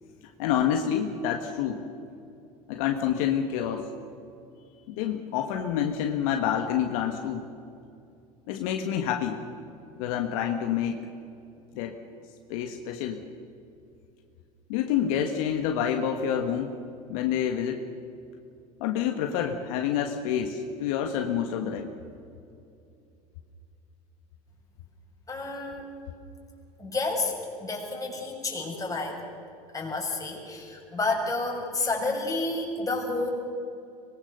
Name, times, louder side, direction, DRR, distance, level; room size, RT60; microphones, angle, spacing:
voice 1, 0.4-1.9 2.7-3.9 4.9-7.4 8.5-9.4 10.0-11.0 11.7-12.0 12.5-13.2 14.7-16.7 17.1-17.8 18.8-21.9, left 9 dB, 70° left, 4 dB, 1.6 m, -28 dB
voice 2, 25.3-25.9 26.8-27.3 27.6-29.2 29.7-33.3, left 3 dB, 20° left, 0 dB, 6.6 m, -30 dB
24.0 x 21.0 x 6.7 m, 2.6 s
hypercardioid pair, 85°, 19 cm